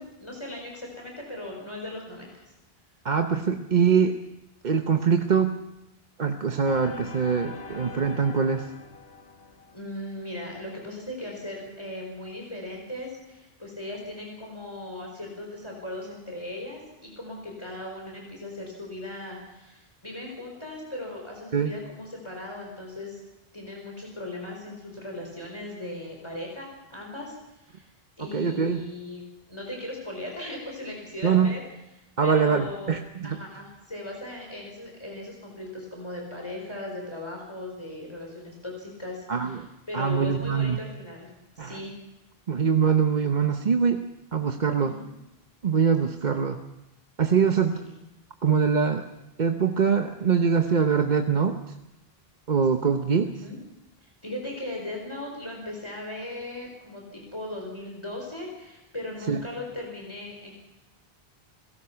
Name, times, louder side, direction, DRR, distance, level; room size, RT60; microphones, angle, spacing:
voice 1, 0.0-2.4 9.7-23.2 23.5-27.9 28.2-31.6 32.2-32.9 33.2-41.3 41.6-41.9 44.9-45.0 47.7-47.8 53.4-53.6 54.0-60.5, left 1 dB, 25° left, -1 dB, 4.5 m, -38 dB
voice 2, 3.0-4.2 4.6-5.6 6.2-8.7 21.5-21.7 28.2-28.9 31.2-31.5 32.2-33.4 39.3-39.7 39.9-40.8 41.6-41.8 42.5-44.0 44.3-45.0 45.6-46.6 47.2-47.8 48.4-49.0 49.4-51.6 52.5-53.3 59.3-59.4, right 6 dB, 50° right, 6 dB, 1.0 m, -23 dB
sound 1, 6.6-10.2, left 4 dB, 75° left, 2.0 m, -42 dB
29.5 x 17.0 x 5.8 m, 0.95 s
omnidirectional pair, 1.0 m